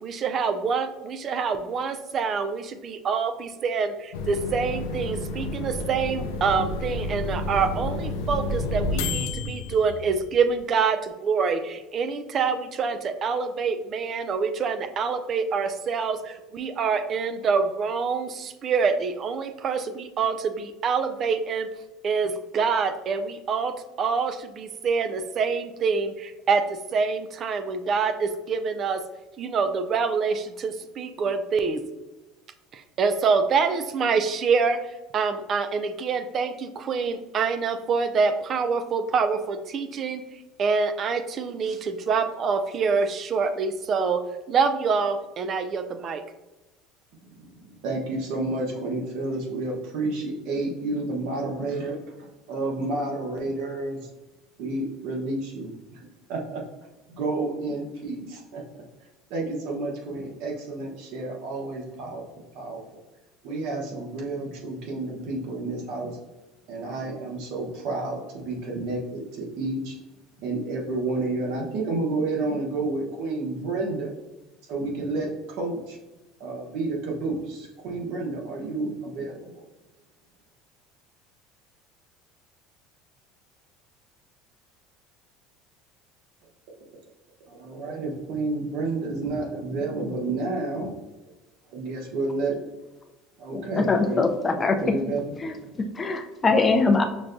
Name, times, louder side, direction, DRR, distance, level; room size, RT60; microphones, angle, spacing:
voice 1, 0.0-21.7 22.0-29.0 29.4-31.8 32.7-40.2 40.6-46.2, right 5 dB, 40° right, 9 dB, 0.4 m, -26 dB
sound 1, 4.1-10.6, left 2 dB, 90° left, 0.4 m, -30 dB
voice 2, 47.3-54.1 54.6-56.0 56.3-56.6 57.1-58.8 59.3-62.2 62.5-62.8 63.4-66.2 66.7-70.0 70.4-74.1 74.7-76.0 76.4-79.6 87.5-90.9 91.7-92.7 93.4-94.2 94.6-95.8, right 2 dB, 65° right, -1 dB, 1.0 m, -30 dB
voice 3, 93.5-94.8 95.4-95.5 96.0-97.0, left 3 dB, 20° left, 4 dB, 0.5 m, -22 dB
6.1 x 2.2 x 2.5 m, 1.1 s
supercardioid pair, 120°, 0 cm